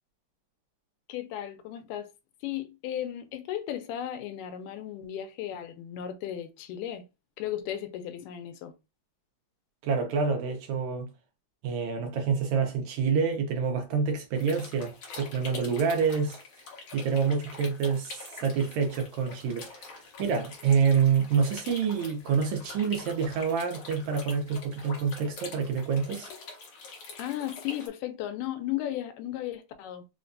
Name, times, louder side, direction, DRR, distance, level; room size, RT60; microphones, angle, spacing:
voice 1, 1.1-2.1 2.4-7.1 7.4-8.7 27.2-30.1, left 11 dB, 85° left, 2.1 m, -35 dB
voice 2, 9.8-11.1 11.6-16.4 16.9-26.3, right 6 dB, 75° right, 1.8 m, -27 dB
sound 1, 14.3-27.9, left 4 dB, 60° left, 1.7 m, -45 dB
5.1 x 2.1 x 2.5 m
omnidirectional pair, 3.7 m